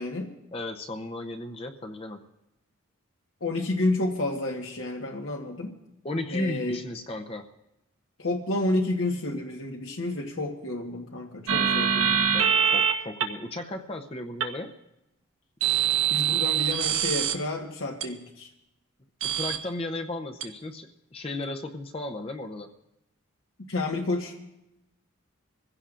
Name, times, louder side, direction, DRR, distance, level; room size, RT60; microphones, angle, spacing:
voice 1, 0.0-0.3 3.4-5.8 6.3-6.8 8.2-12.3 16.1-18.5 23.7-24.3, left 2 dB, 75° left, 0 dB, 1.3 m, -30 dB
voice 2, 0.5-2.2 6.0-7.5 11.5-11.8 12.3-14.7 19.3-22.7, left 2 dB, 25° left, 4 dB, 0.7 m, -35 dB
sound 1, 11.5-12.9 13.2-13.3 14.4-14.5 15.6-17.3 18.0-18.1 19.2-19.6 20.4-20.5, right 8 dB, 80° right, 1.1 m, -23 dB
25.0 x 15.5 x 2.5 m, 0.89 s
head